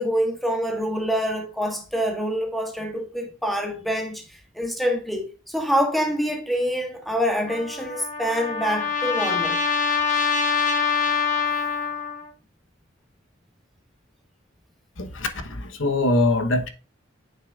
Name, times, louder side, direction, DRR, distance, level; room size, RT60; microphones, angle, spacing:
voice 1, 0.0-9.6, equal, ahead, 1.5 m, -26 dB
Trumpet, 7.5-12.3, left 5 dB, 40° left, 1.3 m, -25 dB
voice 2, 15.0-16.7, left 2 dB, 80° left, 1.0 m, -23 dB
8.5 x 6.6 x 2.4 m
head